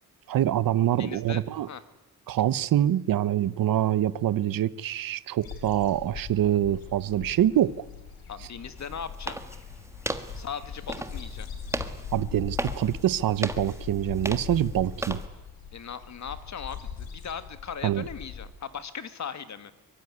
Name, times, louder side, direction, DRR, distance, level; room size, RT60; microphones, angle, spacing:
voice 1, 0.3-1.7 2.3-7.8 12.1-15.2 17.8-18.1, right 12 dB, 70° right, 0.9 m, -25 dB
voice 2, 1.0-1.8 6.2-6.3 8.3-9.4 10.3-11.5 15.7-19.7, left 7 dB, 50° left, 1.8 m, -38 dB
sound 1, 5.4-18.5, left 7 dB, 85° left, 5.3 m, -40 dB
sound 2, 8.8-15.3, right 1 dB, 10° right, 1.5 m, -37 dB
23.5 x 23.0 x 9.7 m
wide cardioid pair, 135°, 35 cm